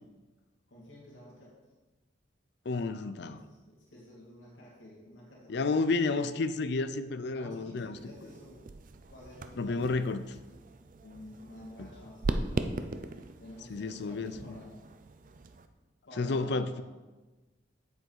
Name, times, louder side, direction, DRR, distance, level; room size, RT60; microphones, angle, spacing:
voice 1, 0.7-1.5 2.9-5.7 7.3-8.6 9.1-10.1 11.0-12.8 13.4-14.9 16.1-16.8, left 1 dB, 90° left, -4 dB, 2.2 m, -50 dB
voice 2, 2.7-3.4 5.5-8.0 9.6-10.2 11.8-11.9 13.7-14.3 16.2-16.8, left 3 dB, 60° left, 12 dB, 0.5 m, -31 dB
sound 1, 7.9-15.7, right 2 dB, 45° right, 0.5 m, -39 dB
7.8 x 7.7 x 4.7 m, 1.2 s
head